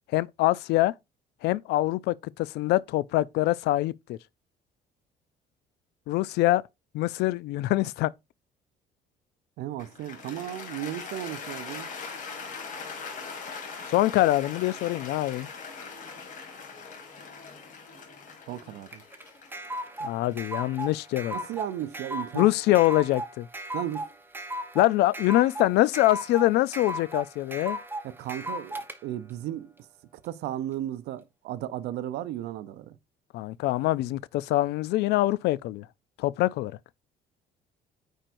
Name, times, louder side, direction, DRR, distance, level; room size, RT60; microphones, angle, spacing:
voice 1, 0.1-0.9 1.4-4.2 6.1-6.6 6.9-8.1 13.9-15.5 20.0-21.3 22.3-23.5 24.7-27.8 33.3-35.9 36.2-36.7, left 16 dB, 80° left, 0.4 m, -24 dB
voice 2, 9.6-11.9 18.5-19.0 21.3-22.5 23.7-24.1 28.0-28.8 29.0-29.7 30.2-32.9, right 12 dB, 80° right, 0.6 m, -35 dB
Cheering / Applause, 9.8-22.0, left 5 dB, 50° left, 2.2 m, -41 dB
sound 1, 18.9-28.9, equal, 10° right, 0.8 m, -36 dB
8.9 x 4.5 x 2.6 m
cardioid pair, 110°, 17 cm